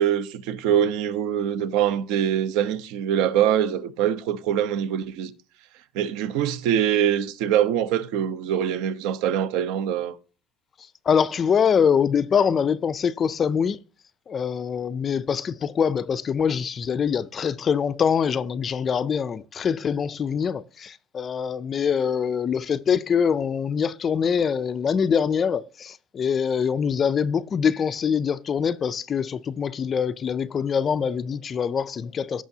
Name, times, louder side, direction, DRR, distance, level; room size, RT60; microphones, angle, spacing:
voice 1, 0.0-5.3 5.9-10.1, right 9 dB, 65° right, 0.8 m, -23 dB
voice 2, 11.1-13.8 14.3-32.4, left 7 dB, 25° left, 0.4 m, -24 dB
16.0 x 6.2 x 2.8 m
cardioid pair, 170°, 0 cm